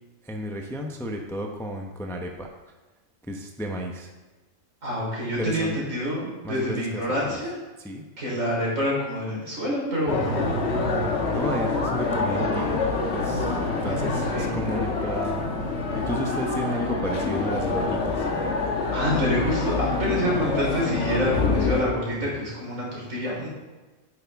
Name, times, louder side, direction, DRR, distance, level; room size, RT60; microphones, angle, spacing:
voice 1, 0.2-2.5 3.3-4.1 5.4-5.8 6.4-7.4 7.8-8.0 11.3-15.5 15.9-18.3, equal, 5° left, 2 dB, 0.6 m, -32 dB
voice 2, 4.8-7.6 8.2-10.5 13.8-14.6 18.9-23.5, equal, 70° right, -5 dB, 4.1 m, -27 dB
sound 1, 10.1-21.8, left 3 dB, 55° left, 1.4 m, -26 dB
9.6 x 8.5 x 3.5 m, 1.2 s
omnidirectional pair, 1.4 m